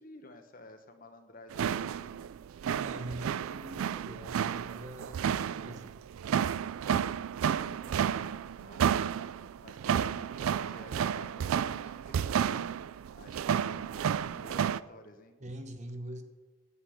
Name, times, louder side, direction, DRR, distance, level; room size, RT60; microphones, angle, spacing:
voice 1, 0.0-2.2 7.6-8.8 9.1-12.8 13.1-15.4, left 2 dB, 40° left, 6 dB, 1.1 m, -53 dB
sound 1, 1.5-14.8, right 8 dB, 80° right, 0.3 m, -31 dB
voice 2, 2.6-6.0 15.4-16.2, right 1 dB, 35° right, 7 dB, 1.0 m, -43 dB
9.8 x 8.2 x 7.9 m, 1.3 s
head